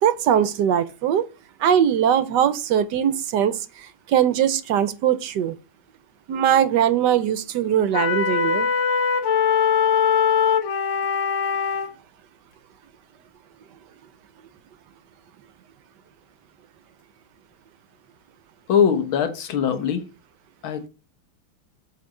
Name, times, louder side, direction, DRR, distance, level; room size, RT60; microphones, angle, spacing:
voice 1, 0.0-1.2 1.6-5.6 6.3-8.7, right 9 dB, 70° right, 1.1 m, -21 dB
sound 1, 7.9-11.9, left 7 dB, 70° left, 1.7 m, -21 dB
voice 2, 18.7-20.0 20.6-20.9, left 7 dB, 90° left, 2.1 m, -21 dB
8.1 x 4.3 x 6.4 m
omnidirectional pair, 2.2 m